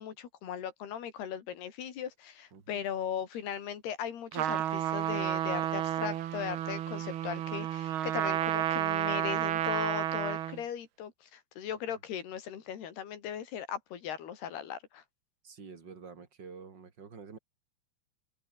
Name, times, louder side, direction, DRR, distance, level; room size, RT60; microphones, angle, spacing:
voice 1, 0.0-15.0, left 9 dB, 80° left, 4.9 m, -38 dB
voice 2, 2.5-2.8 15.4-17.4, right 5 dB, 30° right, 3.3 m, -48 dB
Trumpet, 4.3-10.6, right 11 dB, 75° right, 3.7 m, -31 dB
omnidirectional pair, 4.6 m